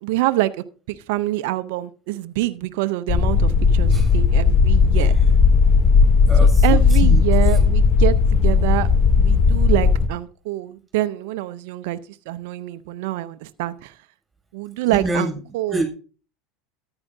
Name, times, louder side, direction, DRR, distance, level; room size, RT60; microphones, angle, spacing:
voice 1, 0.0-0.5 0.9-5.2 6.4-8.9 9.2-12.0 12.3-14.0 14.5-15.8, right 16 dB, 65° right, 0.6 m, -25 dB
ships cabin, 3.1-10.1, left 5 dB, 30° left, 0.9 m, -15 dB
voice 2, 6.3-7.6 14.9-15.4 15.7-15.9, right 2 dB, 10° right, 6.3 m, -28 dB
14.0 x 9.8 x 2.7 m
hypercardioid pair, 85°, 0 cm